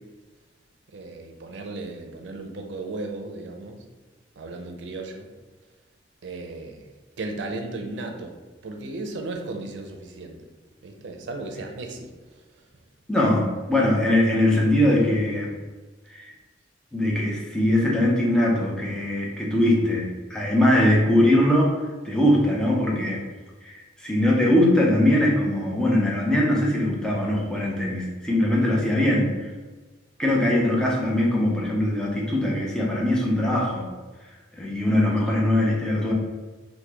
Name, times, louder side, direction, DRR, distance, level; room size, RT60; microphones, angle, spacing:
voice 1, 0.9-3.8 4.4-5.3 6.2-6.8 7.2-8.3 8.6-10.5 10.8-12.1, right 2 dB, 80° right, 2 dB, 0.5 m, -35 dB
voice 2, 13.1-15.5 16.1-16.3 16.9-21.7 22.0-23.2 23.6-29.3 30.2-33.9 34.6-36.1, left 1 dB, 5° left, -4 dB, 0.5 m, -21 dB
3.0 x 2.2 x 3.3 m, 1.3 s
head